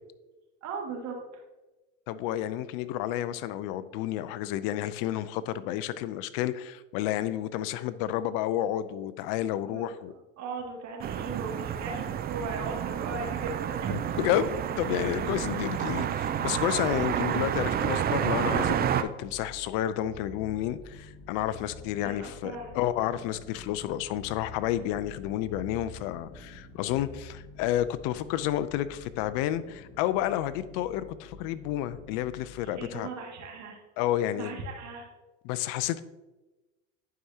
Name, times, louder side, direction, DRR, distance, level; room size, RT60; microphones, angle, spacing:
voice 1, 0.6-1.4 9.6-9.9 10.4-14.2 22.0-22.7 32.6-33.8 34.3-35.1, right 3 dB, 50° right, 2.1 m, -38 dB
voice 2, 2.1-10.1 14.2-33.1 34.0-34.6 35.4-36.0, left 12 dB, 60° left, 0.6 m, -30 dB
sound 1, 11.0-19.0, right 9 dB, 25° right, 0.4 m, -30 dB
sound 2, 14.2-29.5, right 1 dB, 10° right, 1.0 m, -51 dB
sound 3, 20.1-33.0, left 4 dB, 85° left, 1.3 m, -50 dB
11.0 x 4.8 x 2.8 m
supercardioid pair, 95°, 36 cm